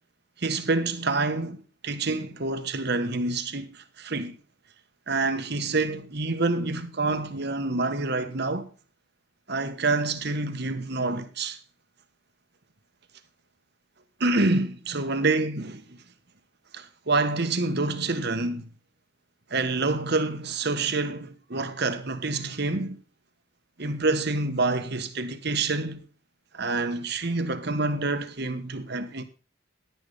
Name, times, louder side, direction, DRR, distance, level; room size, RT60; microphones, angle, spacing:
voice 1, 0.4-4.4 5.1-8.7 9.5-11.6 14.2-15.8 16.7-18.6 19.5-23.0 23.8-26.0 26.5-29.2, right 3 dB, 55° right, 1.4 m, -27 dB
11.0 x 11.0 x 3.5 m
head